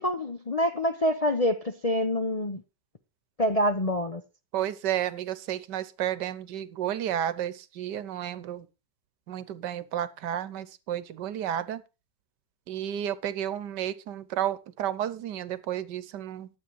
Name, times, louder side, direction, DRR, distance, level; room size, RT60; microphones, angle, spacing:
voice 1, 0.0-2.6 3.4-4.2, left 1 dB, 50° left, 0.4 m, -26 dB
voice 2, 4.5-8.7 9.3-11.8 12.7-16.5, right 11 dB, 75° right, 1.4 m, -32 dB
12.0 x 7.7 x 4.6 m
omnidirectional pair, 1.9 m